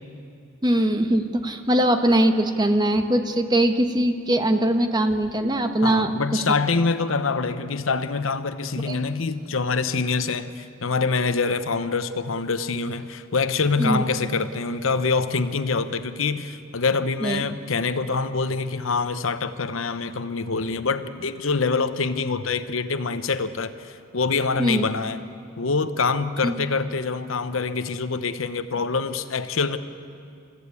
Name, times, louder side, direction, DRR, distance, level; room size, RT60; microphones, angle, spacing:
voice 1, 0.6-6.4 8.9-9.0 13.8-14.0 17.2-17.4 24.6-24.9 26.4-26.5, right 1 dB, 20° right, 6 dB, 1.3 m, -21 dB
voice 2, 5.8-25.2 25.6-29.8, left 4 dB, 75° left, 11 dB, 0.9 m, -25 dB
29.0 x 14.5 x 8.4 m, 2.4 s
head